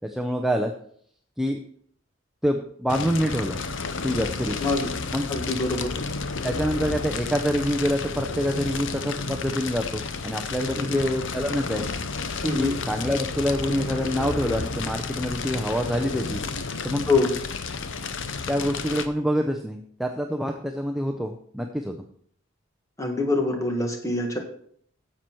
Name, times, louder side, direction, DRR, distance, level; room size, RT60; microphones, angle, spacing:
voice 1, 0.0-0.7 1.4-1.6 2.4-3.6 4.0-4.7 5.1-5.3 6.4-11.8 12.5-16.4 16.8-17.0 18.5-22.0, equal, ahead, 2 dB, 0.5 m, -26 dB
Fire, 2.9-19.1, left 4 dB, 65° left, 0.7 m, -31 dB
voice 2, 4.6-4.9 5.3-5.9 10.8-11.0 12.4-12.8 17.1-17.3 23.0-24.4, left 3 dB, 15° left, 3 dB, 1.4 m, -25 dB
9.7 x 7.7 x 4.5 m, 0.62 s
head